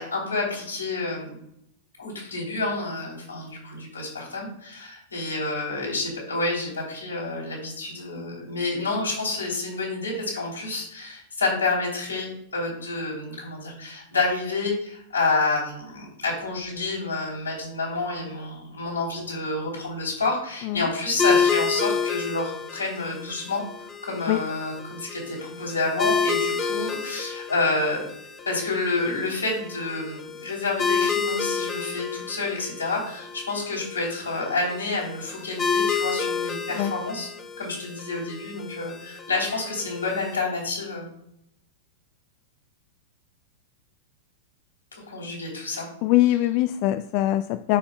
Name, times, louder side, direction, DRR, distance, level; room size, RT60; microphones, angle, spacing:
voice 1, 0.0-1.4 2.0-28.0 28.4-37.3 37.6-41.1 44.9-45.9, left 3 dB, 80° left, -3 dB, 3.2 m, -29 dB
sound 1, 21.2-40.3, left 6 dB, 20° left, 0.9 m, -30 dB
voice 2, 46.0-47.8, left 15 dB, 45° left, 10 dB, 0.3 m, -22 dB
13.0 x 5.2 x 2.3 m, 0.76 s
figure-of-eight pair, 95°, 0 cm